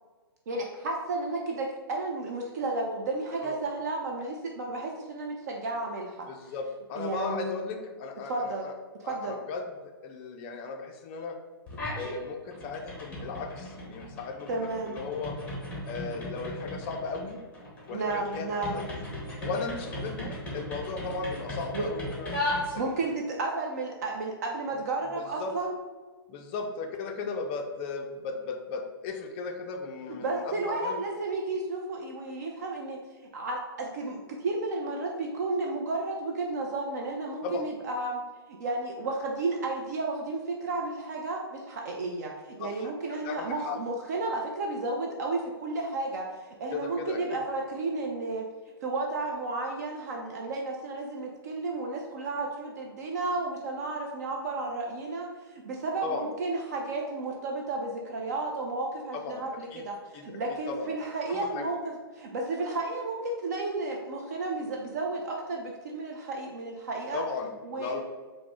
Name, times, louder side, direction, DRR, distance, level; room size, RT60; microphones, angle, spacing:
voice 1, 0.5-6.3 7.0-7.7 8.3-8.7 9.1-9.4 14.5-15.0 17.9-18.9 21.7-21.9 22.8-25.7 30.2-33.0 33.3-46.3 46.6-48.5 48.8-60.0 60.2-67.2 67.6-68.0, right 3 dB, 45° right, 0 dB, 0.4 m, -32 dB
voice 2, 6.3-8.7 9.0-11.4 11.9-15.4 15.8-17.4 17.9-19.1 19.4-22.4 22.7-23.2 25.2-25.6 26.3-31.0 37.4-37.6 42.6-43.8 46.7-47.2 56.0-56.3 59.1-59.8 60.1-60.2 60.7-60.9 61.3-61.7 67.1-68.0, left 4 dB, 25° left, 4 dB, 0.4 m, -36 dB
sound 1, 11.7-12.2 12.5-23.2, left 1 dB, 10° left, 0.9 m, -37 dB
4.6 x 2.1 x 3.5 m, 1.3 s
figure-of-eight pair, 120°, 13 cm